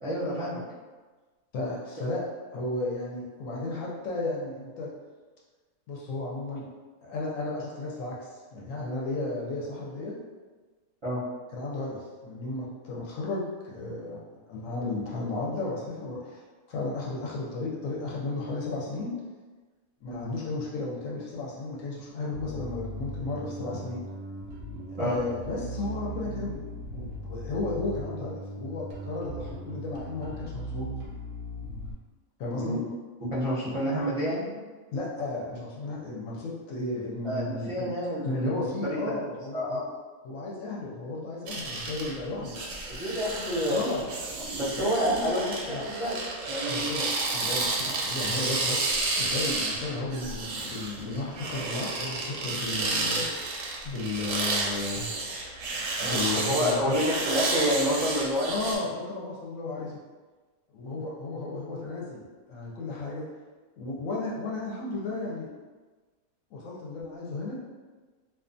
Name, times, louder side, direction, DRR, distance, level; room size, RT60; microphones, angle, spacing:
voice 1, 0.0-0.6 11.0-11.2 25.0-25.2 32.6-32.8 33.2-34.5 37.2-39.1 39.5-39.8 42.9-43.8 44.4-46.2 46.5-46.9 56.4-58.5, equal, 30° right, -12 dB, 0.5 m, -28 dB
voice 2, 1.5-2.2 2.5-4.9 5.9-6.7 7.0-10.1 11.5-16.4 16.7-19.1 20.0-24.0 25.0-26.6 26.9-30.9 32.4-32.8 33.6-33.8 34.9-37.9 38.2-39.8 40.2-42.5 43.7-44.0 44.8-45.3 45.7-45.9 46.6-48.8 49.2-53.3 53.8-55.1 56.0-56.9 58.5-60.0 60.7-63.2 63.8-65.5 66.5-67.6, left 2 dB, 70° left, -4 dB, 0.9 m, -34 dB
Bass guitar, 22.3-31.9, equal, 65° right, 0.8 m, -38 dB
sound 1, 41.5-58.8, right 3 dB, 90° right, 1.1 m, -31 dB
2.4 x 2.4 x 2.5 m, 1.3 s
omnidirectional pair, 1.5 m